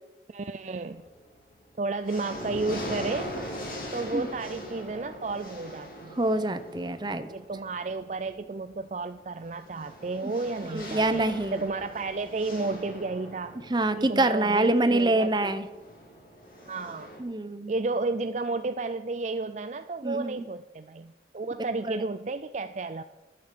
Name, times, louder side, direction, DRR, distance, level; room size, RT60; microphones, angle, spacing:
voice 1, 0.3-1.0 1.8-3.5 3.9-6.2 7.3-11.2 11.5-13.6 14.0-15.5 16.7-17.1 17.7-23.0, right 3 dB, 40° right, 11 dB, 0.4 m, -32 dB
sound 1, 0.8-1.4 1.8-17.2, equal, 50° left, 3.3 m, -41 dB
voice 2, 6.2-7.3 10.2-10.3 10.7-11.6 13.7-15.7 17.2-17.7 20.0-20.5 21.9-22.0, right 2 dB, 25° right, 10 dB, 0.8 m, -25 dB
11.5 x 10.0 x 6.9 m, 1.1 s
head